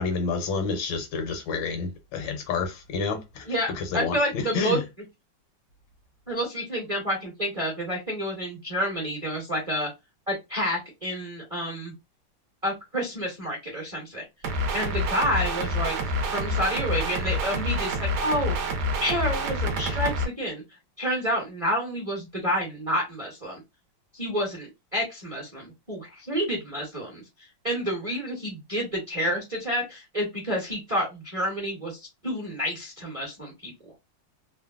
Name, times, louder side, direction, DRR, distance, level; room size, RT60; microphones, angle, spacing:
voice 1, 0.0-4.9, left 4 dB, 75° left, 1.3 m, -29 dB
voice 2, 3.5-4.8 6.3-9.9 10.3-11.9 12.6-14.2 14.7-16.0 16.3-18.7 19.0-20.6 21.0-23.6 24.1-27.2 27.6-33.7, equal, 25° right, 0.8 m, -29 dB
sound 1, 14.4-20.2, equal, 70° right, 1.0 m, -27 dB
3.3 x 2.1 x 2.3 m
omnidirectional pair, 2.2 m